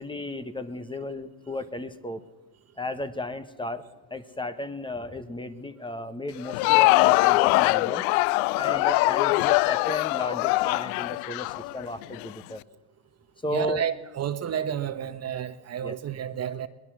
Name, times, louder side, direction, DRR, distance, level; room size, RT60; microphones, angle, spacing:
voice 1, 0.0-2.2 2.8-8.0 8.6-12.6 13.4-13.9 15.8-16.0, left 1 dB, 10° left, 1.3 m, -34 dB
Crowd, 6.4-12.3, left 21 dB, 75° left, 0.6 m, -22 dB
voice 2, 13.5-16.7, right 9 dB, 35° right, 1.2 m, -31 dB
22.0 x 19.0 x 6.3 m
supercardioid pair, 110°, 43 cm